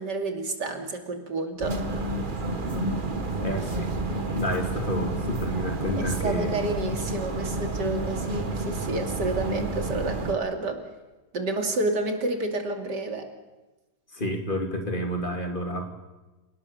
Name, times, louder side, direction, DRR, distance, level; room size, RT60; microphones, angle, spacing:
voice 1, 0.0-1.8 6.0-10.8 11.3-13.3, right 2 dB, 90° right, 5 dB, 3.4 m, -30 dB
sound 1, 1.6-10.3, right 2 dB, 30° right, 1.7 m, -30 dB
voice 2, 3.4-4.1 4.3-6.6 14.1-15.9, equal, 30° left, 4 dB, 3.0 m, -30 dB
28.0 x 18.5 x 7.1 m, 1.1 s
omnidirectional pair, 1.8 m